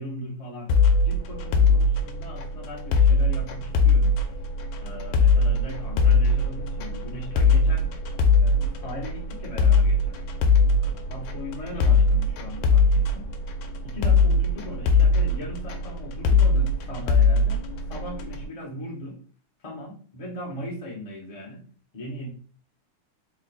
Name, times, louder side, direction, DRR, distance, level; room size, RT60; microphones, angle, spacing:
voice 1, 0.0-4.1 4.8-7.9 8.4-10.2 10.8-13.3 13.8-17.6 17.9-19.2 19.6-21.7 21.9-22.3, equal, 50° left, -2 dB, 0.4 m, -38 dB
sound 1, 0.7-18.4, left 3 dB, 80° left, 1.3 m, -21 dB
3.7 x 2.1 x 4.1 m, 0.43 s
omnidirectional pair, 2.3 m